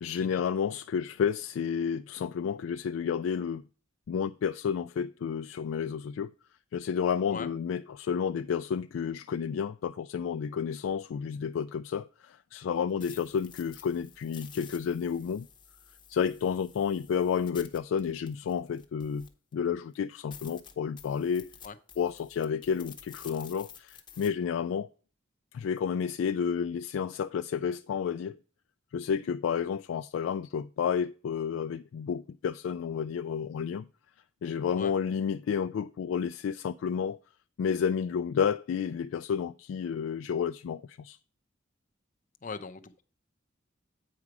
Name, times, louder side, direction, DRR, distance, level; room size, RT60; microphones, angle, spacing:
voice 1, 0.0-3.6 4.1-6.3 6.7-15.5 16.1-19.3 19.5-21.5 22.0-24.9 25.5-28.3 28.9-33.9 34.4-37.2 37.6-41.2, left 7 dB, 85° left, 0.3 m, -31 dB
sound 1, 12.7-19.5 19.9-20.0 20.3-24.3, left 8 dB, 25° left, 1.0 m, -51 dB
voice 2, 42.4-43.0, left 5 dB, 40° left, 0.6 m, -40 dB
8.5 x 5.0 x 4.7 m
head